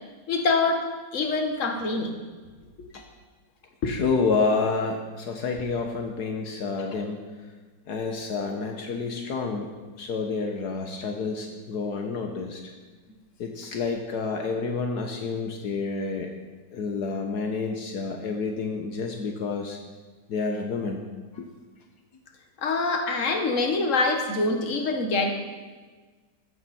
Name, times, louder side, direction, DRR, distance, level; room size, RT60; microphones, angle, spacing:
voice 1, 0.3-2.2 3.8-3.9 22.6-25.3, left 3 dB, 50° left, 4 dB, 1.9 m, -25 dB
voice 2, 3.8-7.3 7.9-9.7 10.0-12.6 13.4-16.3 16.7-19.8 20.3-21.0 21.3-21.5, left 4 dB, 75° left, 3 dB, 1.7 m, -29 dB
15.5 x 13.5 x 4.4 m, 1.4 s
omnidirectional pair, 1.7 m